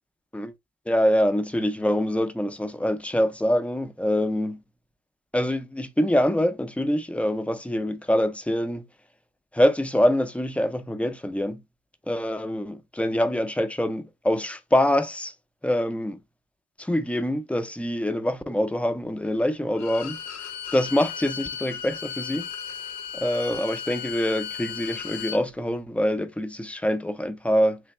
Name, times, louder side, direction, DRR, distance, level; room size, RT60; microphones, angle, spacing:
voice 1, 0.9-4.6 5.3-8.8 9.5-11.6 12.1-15.3 15.6-16.2 16.8-20.2 20.7-22.5 23.1-27.8, equal, 5° left, 0.5 m, -25 dB
Bowed string instrument, 19.7-25.4, left 8 dB, 65° left, 0.6 m, -35 dB
3.4 x 2.9 x 4.2 m
cardioid pair, 90°, 30 cm